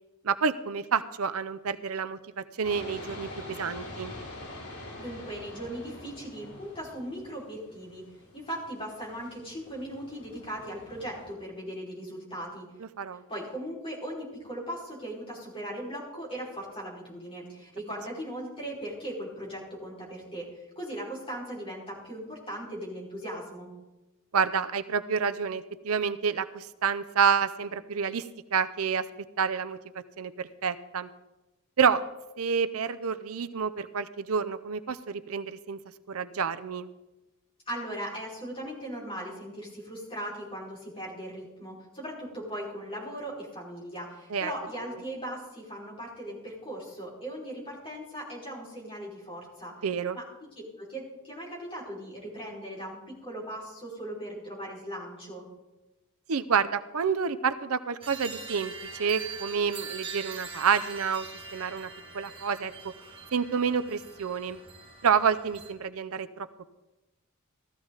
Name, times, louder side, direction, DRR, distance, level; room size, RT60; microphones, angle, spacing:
voice 1, 0.2-4.1 13.0-13.2 24.3-28.2 28.5-29.1 29.4-29.8 30.2-31.1 31.8-32.0 32.4-35.8 36.1-36.9 44.3-44.5 49.8-50.2 56.3-61.3 61.5-61.9 62.1-62.7 63.3-64.6 65.0-66.5, right 6 dB, 75° right, 12 dB, 0.6 m, -28 dB
sound 1, 2.6-11.3, left 1 dB, 85° left, 5.6 m, -45 dB
voice 2, 5.0-8.0 8.3-12.7 13.3-20.5 20.8-23.7 37.7-49.7 50.1-50.5 50.8-55.4, equal, 25° left, -5 dB, 5.2 m, -38 dB
sound 2, 58.0-65.7, right 5 dB, 25° right, 1.9 m, -43 dB
16.0 x 13.5 x 4.0 m, 1.0 s
head